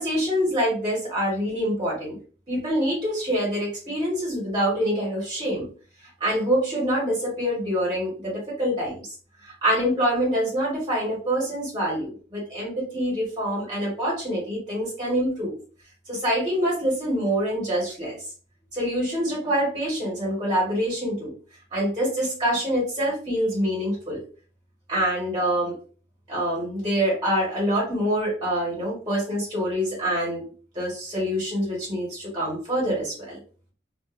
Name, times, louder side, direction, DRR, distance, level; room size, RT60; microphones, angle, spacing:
voice 1, 0.0-2.2 2.5-5.7 6.2-9.0 9.4-15.6 16.1-18.2 18.7-21.3 21.7-24.2 24.9-25.7 26.3-30.4 30.7-33.4, equal, 25° right, -5 dB, 1.2 m, -25 dB
2.5 x 2.4 x 2.4 m, 0.40 s
head